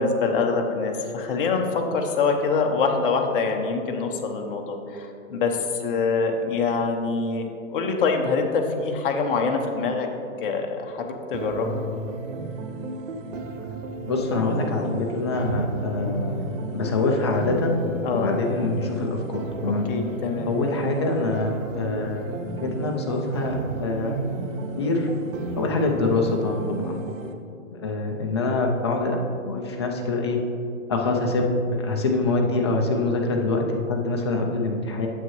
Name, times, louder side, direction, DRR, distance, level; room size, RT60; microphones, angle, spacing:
voice 1, 0.0-10.1 10.4-11.8 18.0-18.3 19.6-20.5, left 4 dB, 40° left, 3 dB, 0.9 m, -25 dB
sound 1, 11.3-27.3, right 2 dB, 70° right, 0.8 m, -33 dB
voice 2, 14.0-16.4 16.7-17.8 18.1-19.9 20.5-24.1 24.8-25.1 25.6-27.0 27.7-29.2 29.4-30.4 30.9-35.1, left 2 dB, 20° left, 1 dB, 0.4 m, -25 dB
9.0 x 7.2 x 3.1 m, 2.6 s
hypercardioid pair, 150°, 40 cm